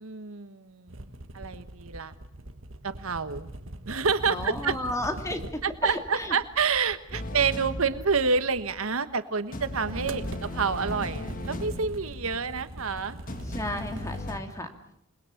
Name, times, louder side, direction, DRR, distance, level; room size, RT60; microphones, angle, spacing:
voice 1, 0.0-2.1 2.8-3.5 3.9-4.7 5.8-13.2, right 5 dB, 80° right, 11 dB, 1.3 m, -28 dB
sound 1, 0.9-9.0 9.6-14.2, right 1 dB, 65° right, 1.5 m, -42 dB
voice 2, 4.3-6.4 13.4-14.7, left 1 dB, 15° left, 5 dB, 2.4 m, -33 dB
sound 2, 7.1-9.2 9.5-14.4, left 1 dB, 40° left, 1.7 m, -38 dB
28.0 x 20.5 x 7.3 m, 0.72 s
head